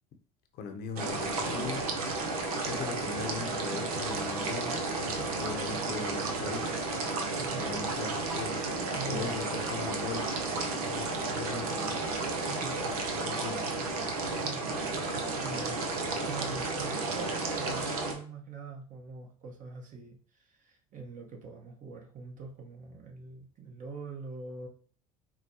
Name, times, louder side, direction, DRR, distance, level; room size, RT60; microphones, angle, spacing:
voice 1, 0.5-1.9 2.6-6.7 7.4-8.6 9.1-10.3 10.7-12.0 12.9-13.6, left 5 dB, 60° left, 5 dB, 0.7 m, -40 dB
sound 1, 1.0-18.1, right 3 dB, 85° right, 0.7 m, -32 dB
voice 2, 8.9-9.4 12.2-12.9 14.0-15.9 16.2-24.7, right 4 dB, 45° right, 1 dB, 1.1 m, -44 dB
4.7 x 2.2 x 2.8 m, 0.44 s
hypercardioid pair, 70°, 18 cm